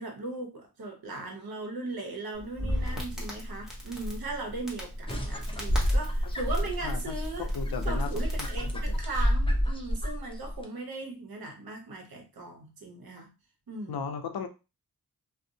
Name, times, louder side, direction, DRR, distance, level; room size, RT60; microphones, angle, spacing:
voice 1, 0.0-13.3 13.7-14.0, right 2 dB, 70° right, 0.8 m, -38 dB
Crackle, 2.3-9.0, equal, ahead, 1.0 m, -38 dB
sound 1, 5.1-10.6, equal, 15° left, 0.5 m, -29 dB
voice 2, 6.8-7.2 7.5-8.1 8.6-8.7 13.9-14.5, left 6 dB, 70° left, 0.5 m, -35 dB
2.6 x 2.0 x 2.7 m
wide cardioid pair, 50°, 38 cm